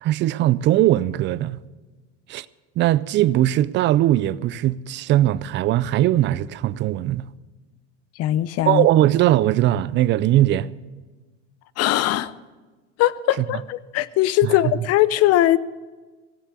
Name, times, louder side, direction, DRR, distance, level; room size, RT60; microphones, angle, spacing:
voice 1, 0.0-1.6 2.3-2.5 2.8-7.2 8.7-10.7 13.4-13.5 14.4-14.5, right 14 dB, 35° right, 0.4 m, -20 dB
voice 2, 8.2-8.9 11.8-12.3 13.0-15.6, left 14 dB, 45° left, 0.6 m, -20 dB
17.0 x 7.3 x 8.3 m
supercardioid pair, 115°, 36 cm